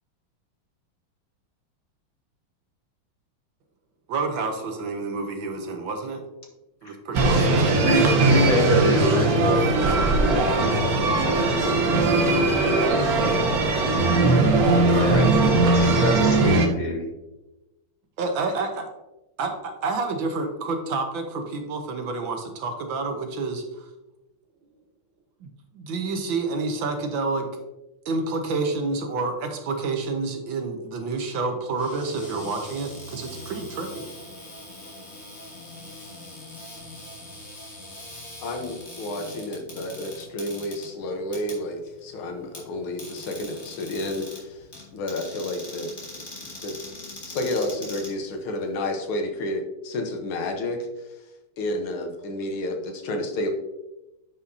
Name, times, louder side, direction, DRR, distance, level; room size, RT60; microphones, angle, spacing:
voice 1, 4.1-6.2 6.8-8.0 18.2-18.8 19.4-19.5 19.8-23.9 25.4-27.5 28.0-34.0, right 3 dB, 70° right, 4 dB, 1.6 m, -29 dB
sound 1, 7.1-16.7, right 2 dB, 55° right, 1.3 m, -20 dB
voice 2, 7.6-9.8 10.2-10.9 11.2-12.5 14.9-15.3 15.6-17.1, left 2 dB, 50° left, 1 dB, 1.2 m, -27 dB
Cupboard open or close, 31.7-48.8, left 1 dB, 30° left, 2.3 m, -42 dB
voice 3, 38.4-44.6 44.9-45.9 46.6-46.8 47.3-50.9 51.6-53.5, left 1 dB, 75° left, 4 dB, 1.9 m, -30 dB
9.6 x 5.6 x 2.7 m, 0.98 s
omnidirectional pair, 2.3 m